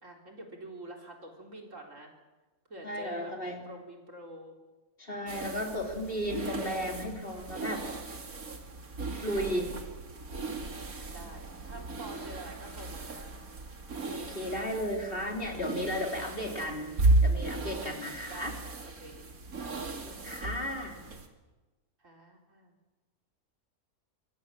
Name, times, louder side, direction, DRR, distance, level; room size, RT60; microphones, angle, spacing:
voice 1, 0.0-2.1 2.7-4.6 9.4-9.9 11.1-13.3 16.5-17.1 18.3-19.2 19.6-20.4 22.0-22.7, right 1 dB, 55° right, 1 dB, 4.3 m, -48 dB
voice 2, 2.8-3.6 5.0-7.8 9.2-9.7 14.1-16.9 17.2-18.5 19.8-21.0, equal, 40° left, 2 dB, 3.7 m, -34 dB
sound 1, 5.3-21.3, right 2 dB, 70° right, 2.8 m, -34 dB
25.5 x 20.5 x 7.6 m, 1.2 s
omnidirectional pair, 1.6 m